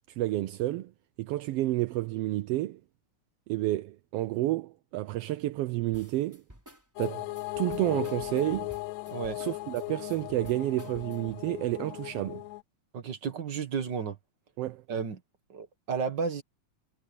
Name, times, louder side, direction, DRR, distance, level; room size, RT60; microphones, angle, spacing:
voice 1, 0.2-0.9 1.2-2.8 3.5-6.4 7.0-7.3 7.6-8.7 9.4-12.4 14.6-14.8, right 16 dB, 80° right, 1.4 m, -30 dB
sound 1, 5.9-11.4, equal, 5° right, 3.4 m, -53 dB
sound 2, 7.0-12.6, left 20 dB, 80° left, 1.9 m, -37 dB
voice 2, 12.9-14.2 14.9-15.2 15.5-16.4, right 6 dB, 45° right, 1.6 m, -32 dB
omnidirectional pair, 3.4 m